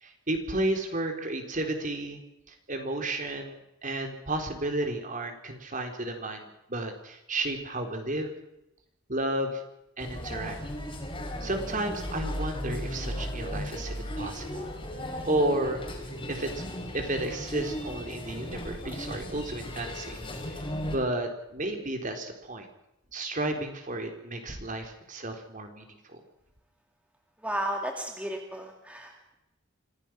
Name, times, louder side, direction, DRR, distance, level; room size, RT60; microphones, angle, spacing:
voice 1, 0.0-2.2 2.5-8.3 9.1-9.6 10.0-10.6 11.4-14.7 15.3-15.8 16.3-16.6 16.9-20.2 20.8-22.7 23.1-26.2, right 1 dB, 40° right, 5 dB, 3.9 m, -32 dB
sound 1, 10.0-21.0, equal, 25° left, 4.9 m, -36 dB
voice 2, 27.4-29.3, right 1 dB, 5° right, 2 dB, 2.2 m, -34 dB
26.0 x 16.5 x 6.0 m, 0.87 s
head